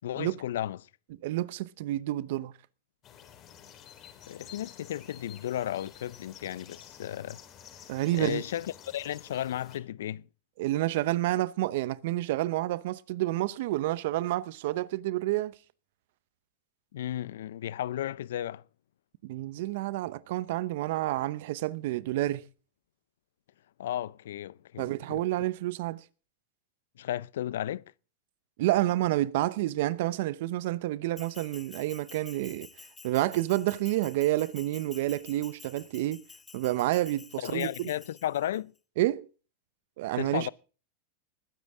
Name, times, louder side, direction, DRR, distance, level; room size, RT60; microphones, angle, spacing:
voice 1, 0.0-0.8 4.3-7.4 8.1-10.3 16.9-18.6 23.8-25.2 27.0-27.8 37.4-38.7 40.2-40.5, left 12 dB, 80° left, 0.5 m, -34 dB
voice 2, 1.2-2.5 7.9-8.4 10.6-15.5 19.2-22.4 24.8-26.0 28.6-32.7 33.0-36.2 36.5-37.9 39.0-39.3 40.0-40.5, right 16 dB, 65° right, 0.8 m, -29 dB
sound 1, 3.0-9.8, left 9 dB, 35° left, 4.0 m, -51 dB
Bell, 31.2-38.6, left 4 dB, 15° left, 0.8 m, -51 dB
20.5 x 9.7 x 3.6 m
hypercardioid pair, 120°, 0 cm